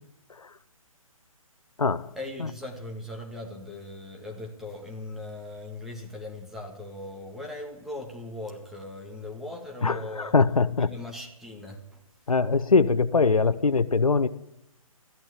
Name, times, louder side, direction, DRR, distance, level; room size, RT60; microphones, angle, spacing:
voice 1, 2.2-10.3 10.8-12.0, left 2 dB, ahead, 0 dB, 1.8 m, -39 dB
voice 2, 9.8-10.9 12.3-14.3, left 4 dB, 80° left, 14 dB, 0.8 m, -22 dB
14.0 x 11.5 x 8.1 m, 0.83 s
figure-of-eight pair, 140°, 18 cm